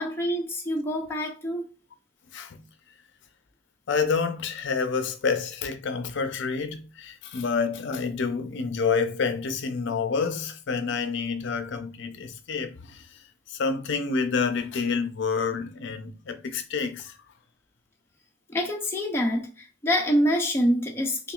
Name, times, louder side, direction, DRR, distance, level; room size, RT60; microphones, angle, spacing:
voice 1, 0.0-1.6 18.5-21.3, equal, 10° left, 0.6 m, -26 dB
voice 2, 2.3-2.6 3.9-17.2, left 5 dB, 65° left, 0.5 m, -28 dB
5.7 x 2.3 x 2.4 m
head